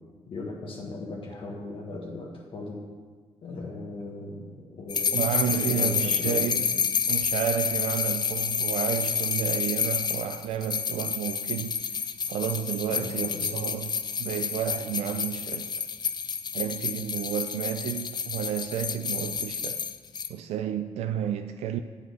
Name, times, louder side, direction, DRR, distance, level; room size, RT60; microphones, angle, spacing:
voice 1, 0.3-2.8 3.4-6.7 12.9-13.6, left 2 dB, 60° left, 1.4 m, -38 dB
sound 1, 4.9-20.3, left 6 dB, 45° left, 0.5 m, -29 dB
voice 2, 5.1-6.6 7.1-12.0 12.3-15.7 16.5-19.8 20.3-21.8, right 9 dB, 85° right, 0.4 m, -31 dB
7.9 x 5.0 x 6.3 m
cardioid pair, 75°, 10 cm